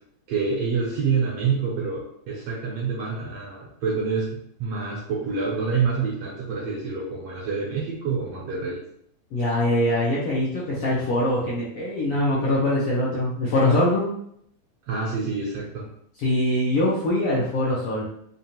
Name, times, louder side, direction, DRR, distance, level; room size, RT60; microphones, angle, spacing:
voice 1, 0.3-8.8 14.9-15.9, right 5 dB, 75° right, -3 dB, 1.5 m, -27 dB
voice 2, 9.3-14.1 16.2-18.0, left 1 dB, 70° left, -6 dB, 1.4 m, -23 dB
5.1 x 2.4 x 2.8 m, 0.71 s
omnidirectional pair, 3.4 m